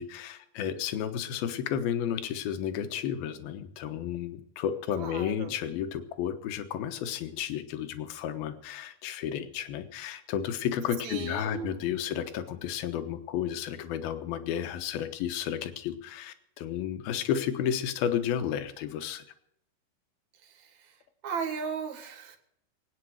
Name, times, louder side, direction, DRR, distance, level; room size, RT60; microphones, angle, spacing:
voice 1, 0.0-19.2, left 9 dB, 70° left, 9 dB, 2.8 m, -32 dB
voice 2, 5.0-5.6 11.0-12.2 20.3-22.4, right 6 dB, 55° right, 4 dB, 2.4 m, -37 dB
23.0 x 9.3 x 6.4 m, 0.76 s
omnidirectional pair, 5.1 m